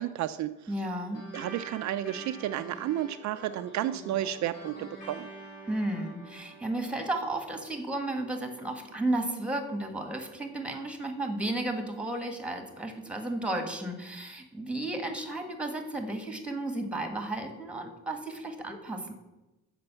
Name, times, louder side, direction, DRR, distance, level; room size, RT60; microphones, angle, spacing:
voice 1, 0.0-0.5 1.3-5.3, right 12 dB, 70° right, 11 dB, 0.4 m, -32 dB
voice 2, 0.7-1.2 5.6-19.1, right 1 dB, 5° right, 5 dB, 1.6 m, -33 dB
sound 1, 1.1-10.0, right 2 dB, 90° left, 3.3 m, -48 dB
6.8 x 5.2 x 6.9 m, 1.0 s
cardioid pair, 90°, 30 cm